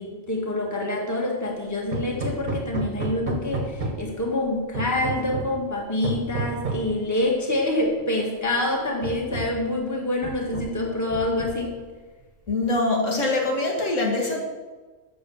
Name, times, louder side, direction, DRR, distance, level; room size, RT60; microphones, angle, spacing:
voice 1, 0.0-11.8, left 1 dB, 15° left, 0 dB, 1.4 m, -26 dB
Hammer, 1.9-4.2 4.7-5.6 6.0-7.0 8.0-8.1 8.5-8.6 9.0-9.7 10.2-10.8 11.1-11.8, right 2 dB, 40° right, 1.1 m, -31 dB
voice 2, 12.5-14.4, left 2 dB, 80° left, -1 dB, 2.1 m, -23 dB
7.9 x 6.2 x 6.9 m, 1.3 s
omnidirectional pair, 1.3 m